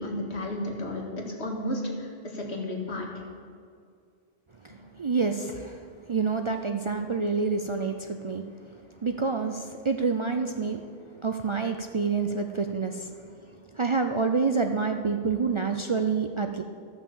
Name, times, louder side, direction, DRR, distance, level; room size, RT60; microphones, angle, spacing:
voice 1, 0.0-3.1, left 1 dB, 85° left, -1 dB, 2.1 m, -33 dB
voice 2, 4.6-8.4 9.0-10.8 11.2-13.1 13.7-16.6, right 4 dB, 45° right, 5 dB, 0.4 m, -28 dB
13.5 x 5.8 x 7.0 m, 2.3 s
omnidirectional pair, 1.1 m